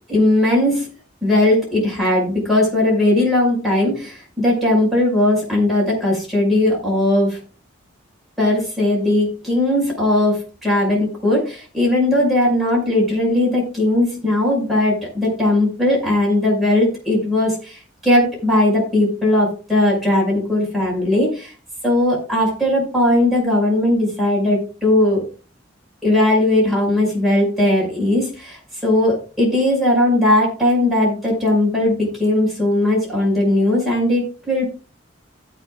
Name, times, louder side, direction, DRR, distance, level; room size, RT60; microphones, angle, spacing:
voice 1, 0.1-0.9 1.2-7.4 8.4-21.5 21.8-25.2 26.0-34.6, left 1 dB, ahead, -5 dB, 5.9 m, -18 dB
16.5 x 8.8 x 2.4 m, 0.36 s
head